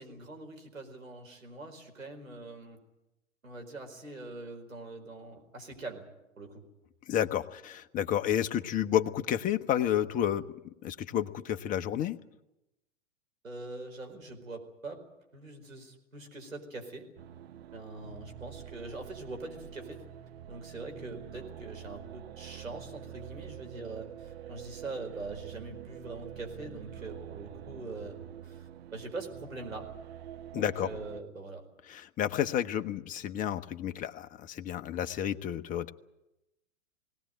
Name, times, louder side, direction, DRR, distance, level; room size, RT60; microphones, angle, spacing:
voice 1, 0.0-2.8 3.4-6.0 6.4-6.6 13.4-15.0 15.3-17.1 17.7-20.0 20.5-28.2 28.4-29.9 30.5-31.6, right 2 dB, 85° right, 4 dB, 4.7 m, -43 dB
voice 2, 7.1-10.5 10.8-12.2 30.5-30.9 31.9-35.9, left 10 dB, 20° left, 8 dB, 0.9 m, -30 dB
sound 1, 17.2-31.2, right 10 dB, 50° right, 0.9 m, -46 dB
20.5 x 18.0 x 9.2 m, 0.95 s
figure-of-eight pair, 110°, 39 cm